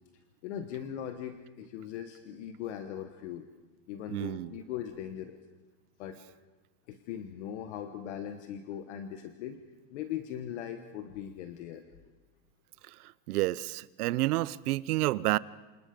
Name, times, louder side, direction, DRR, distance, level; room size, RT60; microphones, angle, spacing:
voice 1, 0.4-3.5 3.9-5.4 6.0-6.2 6.9-9.6 9.9-11.8, left 10 dB, 45° left, 1.2 m, -39 dB
voice 2, 4.1-4.6 12.9-15.4, right 17 dB, 65° right, 0.7 m, -30 dB
28.0 x 27.0 x 5.2 m
supercardioid pair, 180°, 50 cm